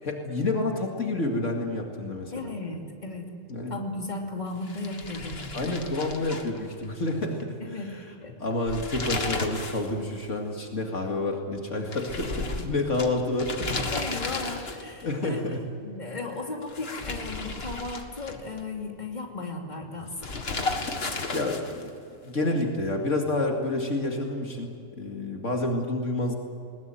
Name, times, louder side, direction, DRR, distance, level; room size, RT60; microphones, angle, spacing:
voice 1, 0.0-2.5 3.5-3.8 5.5-7.8 8.4-13.8 15.0-15.6 21.3-21.9 22.3-26.4, left 2 dB, 75° left, 2 dB, 2.6 m, -29 dB
voice 2, 2.3-3.3 3.7-5.8 7.6-8.4 13.9-15.4 15.8-20.3, left 2 dB, 35° left, 1 dB, 3.0 m, -36 dB
sound 1, 4.6-7.1 7.4-7.5 8.5-9.9 10.2-10.3 11.9-15.0 16.6-18.6 20.2-21.9, left 3 dB, 50° left, 2.0 m, -33 dB
21.0 x 20.5 x 9.2 m, 2.6 s
omnidirectional pair, 1.3 m